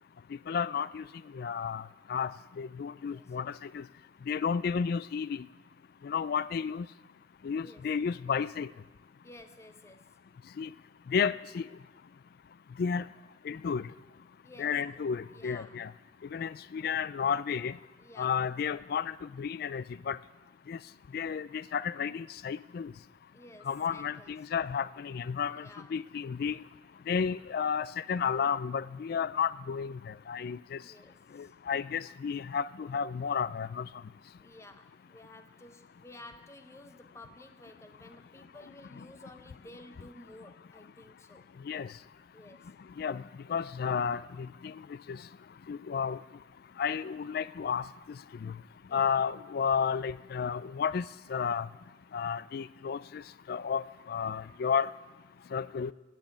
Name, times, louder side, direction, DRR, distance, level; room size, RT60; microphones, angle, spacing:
voice 1, 0.5-1.0 1.3-1.8 2.1-2.3 2.6-3.8 4.3-5.4 6.0-6.9 7.4-8.7 10.6-10.7 11.1-11.7 12.8-13.1 13.5-13.8 14.6-15.9 16.3-17.8 18.2-20.2 20.7-20.8 21.1-22.9 23.7-25.6 25.9-26.6 27.1-30.8 31.4-33.9 41.7-41.9 43.0-43.2 43.5-44.7 45.1-45.2 45.7-46.2 46.8-47.9 48.4-48.5 48.9-51.7 52.1-53.2 53.5-54.9 55.5-55.9, left 6 dB, 50° left, 18 dB, 0.3 m, -32 dB
voice 2, 3.0-3.4 7.6-7.9 9.2-10.2 14.4-15.0 15.3-15.8 18.0-18.4 23.3-24.5 25.5-26.0 30.7-31.5 34.4-41.5 42.3-42.7 48.9-49.1, left 1 dB, 15° left, 9 dB, 0.6 m, -53 dB
11.0 x 7.5 x 9.1 m, 1.2 s
head